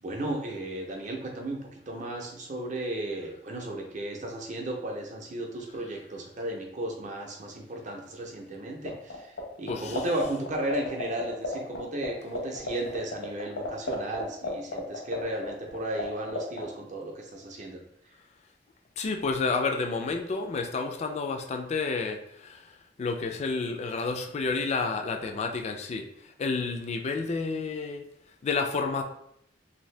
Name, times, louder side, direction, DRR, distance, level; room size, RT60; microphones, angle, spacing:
voice 1, 0.0-1.6 1.9-9.3 9.6-17.8, right 1 dB, 40° right, 1 dB, 0.6 m, -34 dB
sound 1, 8.9-9.4 9.7-11.8 12.0-12.1 12.3-16.0 16.3-16.6, left 4 dB, 85° left, 0.9 m, -31 dB
voice 2, 19.0-22.6 23.0-26.1 26.4-28.0 28.4-29.0, left 4 dB, 35° left, 4 dB, 0.3 m, -30 dB
2.7 x 2.6 x 3.2 m, 0.73 s
head